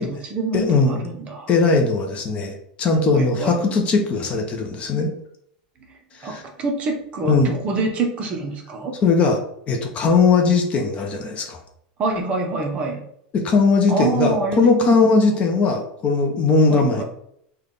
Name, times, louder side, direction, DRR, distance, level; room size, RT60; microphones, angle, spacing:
voice 1, 0.0-1.5 3.1-3.6 5.9-8.9 12.0-13.0 13.9-15.0 16.7-17.0, right 3 dB, 30° right, 3 dB, 0.6 m, -26 dB
voice 2, 0.5-1.0 1.5-5.1 6.2-6.4 7.2-7.5 9.0-9.4 9.7-11.6 13.3-17.0, left 4 dB, 30° left, 3 dB, 0.5 m, -19 dB
3.3 x 2.2 x 3.8 m, 0.73 s
supercardioid pair, 150°, 4 cm